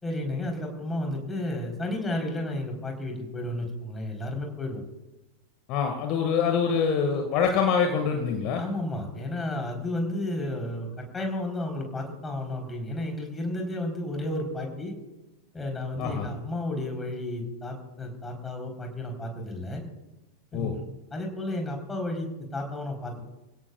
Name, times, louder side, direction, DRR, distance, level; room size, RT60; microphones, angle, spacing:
voice 1, 0.0-4.8 8.6-10.9 11.1-14.9 15.5-19.8 20.5-20.8 21.1-23.2, left 1 dB, 15° left, 2 dB, 3.9 m, -32 dB
voice 2, 5.7-8.6 16.0-16.3 20.5-20.7, left 6 dB, 40° left, 4 dB, 1.9 m, -25 dB
27.0 x 16.5 x 2.4 m, 1.0 s
figure-of-eight pair, 90°, 0 cm